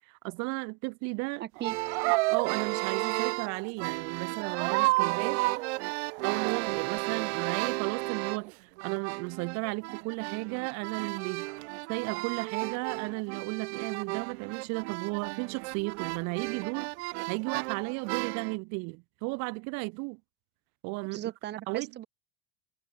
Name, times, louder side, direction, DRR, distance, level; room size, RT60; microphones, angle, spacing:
voice 1, 0.1-1.4 2.3-5.4 6.2-11.5 11.9-20.2 20.8-21.2 21.7-21.9, right 32 dB, 50° right, 1.5 m, -34 dB
voice 2, 1.4-1.8 21.1-22.1, right 12 dB, 30° right, 2.3 m, -37 dB
sound 1, 1.6-8.5 8.8-18.6, right 25 dB, 65° right, 1.2 m, -32 dB
supercardioid pair, 165°, 36 cm